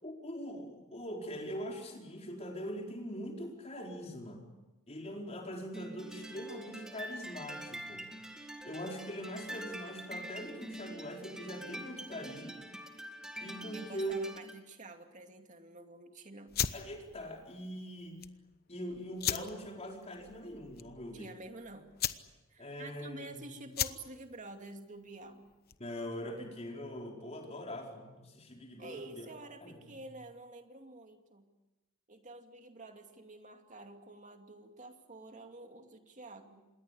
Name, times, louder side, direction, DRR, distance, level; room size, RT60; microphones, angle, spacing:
voice 1, 0.0-4.4 4.9-8.1 8.6-12.6 13.3-14.2 16.7-18.2 18.7-21.3 22.6-23.5 25.8-29.3 29.6-29.8, equal, 30° left, 1 dB, 4.7 m, -42 dB
sound 1, 5.7-14.6, right 1 dB, 5° right, 2.0 m, -46 dB
voice 2, 13.7-16.5 21.1-21.9 22.5-25.5 28.8-31.5 32.1-36.7, right 2 dB, 35° right, 5 dB, 2.4 m, -49 dB
sound 2, 16.5-26.0, left 10 dB, 50° left, 1.0 m, -39 dB
27.0 x 21.0 x 8.5 m, 1.1 s
head